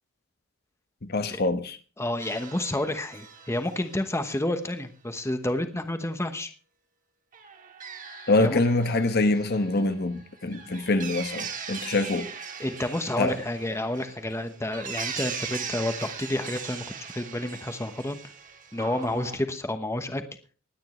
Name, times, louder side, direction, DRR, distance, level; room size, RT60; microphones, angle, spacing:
voice 1, 1.0-1.8 8.3-12.3 13.2-13.4, left 2 dB, 50° left, 1.1 m, -25 dB
voice 2, 2.0-6.5 8.4-8.6 12.6-16.8 17.1-18.2 18.7-20.2, left 1 dB, 15° left, 1.1 m, -30 dB
sound 1, 2.2-4.2 7.3-19.4, right 6 dB, 40° right, 1.8 m, -40 dB
20.0 x 9.6 x 3.2 m
head